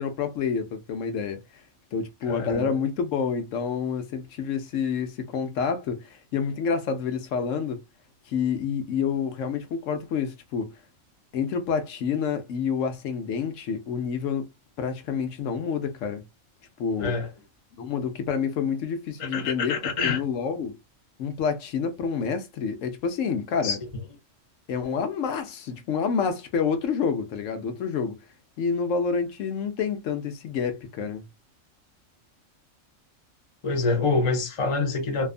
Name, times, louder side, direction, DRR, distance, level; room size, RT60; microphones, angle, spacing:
voice 1, 0.0-1.4 1.9-7.8 8.3-10.7 11.3-14.5 14.8-16.2 16.8-17.1 17.8-19.8 20.0-20.8 21.2-23.8 24.7-28.2 28.6-31.2, left 6 dB, 80° left, 1.0 m, -28 dB
voice 2, 2.3-2.7 17.0-17.3 19.2-20.2 23.6-23.8 33.6-35.3, left 4 dB, 30° left, 0.6 m, -26 dB
2.6 x 2.3 x 2.4 m
omnidirectional pair, 1.3 m